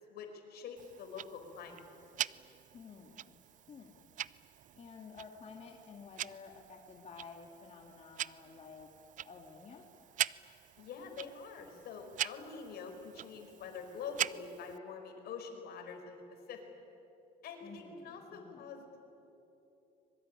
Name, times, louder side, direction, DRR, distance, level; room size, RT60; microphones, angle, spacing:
voice 1, 0.1-1.8 10.8-16.2 16.5-16.6 17.4-19.0, left 5 dB, 70° left, 4 dB, 5.0 m, -46 dB
Tick-tock, 0.8-14.8, right 11 dB, 50° right, 0.5 m, -43 dB
voice 2, 2.7-3.4 3.7-4.1 4.8-8.9 9.2-9.9 17.6-18.7, left 5 dB, 40° left, 1 dB, 2.3 m, -52 dB
25.0 x 22.5 x 9.9 m, 3.0 s
cardioid pair, 110°, 17 cm